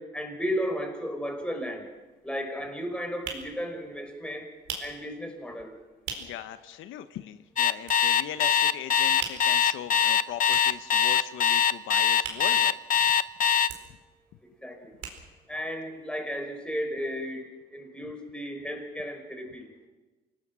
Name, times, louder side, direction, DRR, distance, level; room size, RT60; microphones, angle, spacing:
voice 1, 0.0-1.9 2.2-4.5 4.8-5.8 14.6-14.9 15.5-19.7, equal, 5° left, 3 dB, 5.3 m, -34 dB
sound 1, 1.4-1.5 1.8-6.5 6.8-6.9 7.2-8.4 8.7-13.2 13.5-15.6 15.9-16.2, right 5 dB, 85° right, 4.5 m, -41 dB
voice 2, 6.2-12.8, left 11 dB, 85° left, 11 dB, 0.9 m, -39 dB
Alarm, 7.6-13.7, left 8 dB, 45° left, 0.8 m, -22 dB
27.0 x 19.0 x 6.2 m, 1.2 s
cardioid pair, 90°, 20 cm